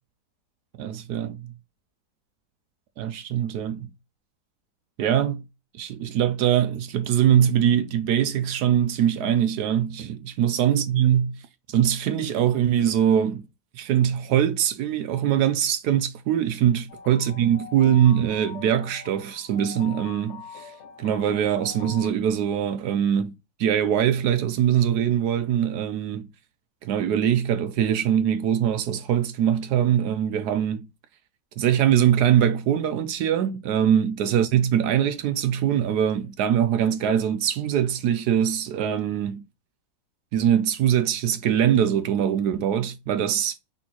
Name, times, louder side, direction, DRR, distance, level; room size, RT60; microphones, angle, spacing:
voice 1, 0.8-1.5 3.0-3.9 5.0-5.4 5.8-11.4 11.7-13.4 13.7-20.7 21.0-23.3 23.6-26.3 26.8-30.9 31.6-39.4 40.3-43.5, right 9 dB, 75° right, 1.0 m, -22 dB
sound 1, 16.9-22.1, left 6 dB, 60° left, 0.8 m, -43 dB
4.2 x 3.7 x 2.9 m
omnidirectional pair, 1.9 m